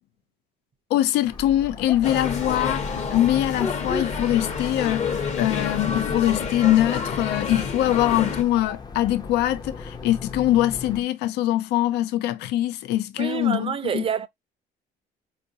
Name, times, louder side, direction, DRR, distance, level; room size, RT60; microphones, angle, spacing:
voice 1, 0.9-14.0, left 13 dB, 80° left, 0.4 m, -23 dB
sound 1, 1.3-11.0, left 3 dB, 25° left, 0.5 m, -36 dB
sound 2, 2.0-8.4, left 5 dB, 40° left, 0.9 m, -29 dB
voice 2, 13.2-14.3, right 8 dB, 35° right, 0.5 m, -27 dB
4.7 x 2.5 x 2.6 m
cardioid pair, 110°, 17 cm